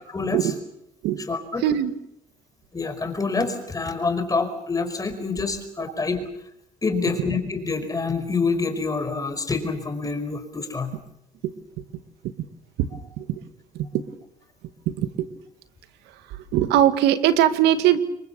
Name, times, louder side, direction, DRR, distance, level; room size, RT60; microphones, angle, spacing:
voice 1, 0.1-0.5 1.3-1.6 2.7-6.2 6.8-11.0, left 4 dB, 20° left, 7 dB, 5.1 m, -26 dB
voice 2, 1.6-1.9 11.4-11.5 12.8-12.9 13.2-13.4 13.7-14.0 14.9-15.3 16.5-18.0, right 11 dB, 90° right, 10 dB, 2.0 m, -20 dB
27.5 x 23.0 x 7.0 m, 0.79 s
cardioid pair, 110°, 17 cm